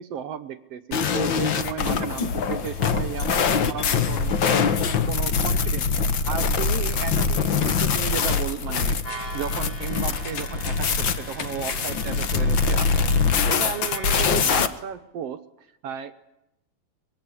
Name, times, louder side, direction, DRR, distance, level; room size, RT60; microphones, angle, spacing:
voice 1, 0.0-4.6 5.0-9.0 9.3-13.2 13.5-16.1, right 8 dB, 65° right, 9 dB, 1.6 m, -34 dB
sound 1, 0.9-14.7, left 5 dB, 90° left, 1.0 m, -23 dB
sound 2, 7.4-8.3 8.6-12.0 12.3-12.4, left 5 dB, 65° left, 3.9 m, -40 dB
sound 3, 9.0-14.5, right 1 dB, 35° left, 7.6 m, -40 dB
24.0 x 22.0 x 9.9 m, 0.88 s
omnidirectional pair, 4.1 m